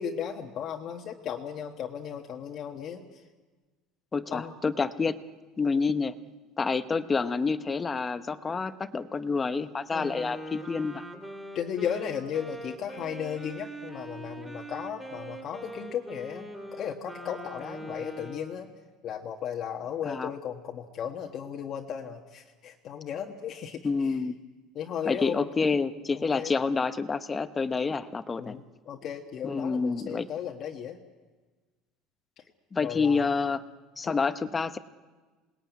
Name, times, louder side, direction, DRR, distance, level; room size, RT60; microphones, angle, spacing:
voice 1, 0.0-3.2 4.3-4.5 9.9-10.1 11.5-18.7 19.0-24.2 24.7-25.4 26.1-26.5 28.4-31.0 32.4-32.5 32.8-33.3 34.1-34.2, left 8 dB, 35° left, 2 dB, 1.4 m, -35 dB
voice 2, 4.1-5.2 5.6-6.1 6.6-11.0 20.0-20.3 23.8-24.4 25.1-28.6 29.4-30.3 32.7-33.6 34.0-34.8, left 4 dB, 15° left, 12 dB, 0.8 m, -28 dB
Wind instrument woodwind instrument, 10.0-18.6, right 1 dB, 5° right, 2.8 m, -42 dB
27.5 x 20.0 x 9.3 m, 1.3 s
cardioid pair, 165°, 0 cm